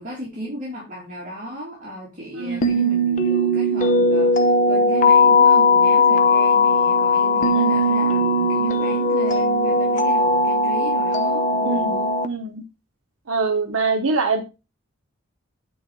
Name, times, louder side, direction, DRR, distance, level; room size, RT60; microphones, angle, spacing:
voice 1, 0.0-12.1, equal, 40° right, -5 dB, 2.7 m, -35 dB
voice 2, 2.4-2.7 7.5-7.7 11.6-12.0 12.2-12.6 13.3-14.4, right 4 dB, 80° right, 5 dB, 0.9 m, -23 dB
sound 1, 2.6-12.3, left 2 dB, 35° left, 0.7 m, -18 dB
9.5 x 4.5 x 4.7 m, 0.30 s
head